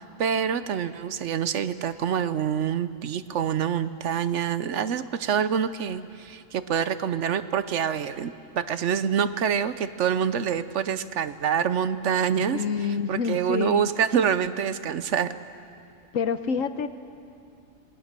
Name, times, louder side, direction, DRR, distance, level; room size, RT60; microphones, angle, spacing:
voice 1, 0.0-12.6 13.1-15.4, right 8 dB, 65° right, 13 dB, 1.0 m, -26 dB
voice 2, 12.4-13.9 16.1-16.9, left 6 dB, 70° left, 11 dB, 1.2 m, -27 dB
26.5 x 20.5 x 6.7 m, 2.5 s
omnidirectional pair, 1.4 m